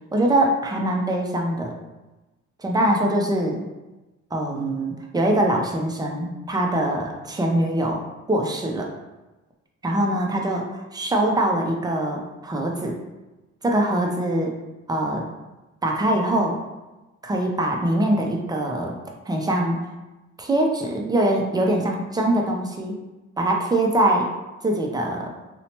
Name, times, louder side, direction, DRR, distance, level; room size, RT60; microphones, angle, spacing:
voice 1, 0.1-1.7 2.6-3.6 4.3-8.0 8.3-8.9 9.8-10.6 10.9-13.0 13.6-14.5 14.9-15.3 15.8-16.6 17.2-19.0 19.3-19.8 20.4-23.0 23.4-24.3 24.6-25.3, right 1 dB, 15° right, 0 dB, 0.4 m, -23 dB
2.7 x 2.1 x 2.8 m, 1.1 s
cardioid pair, 90°, 30 cm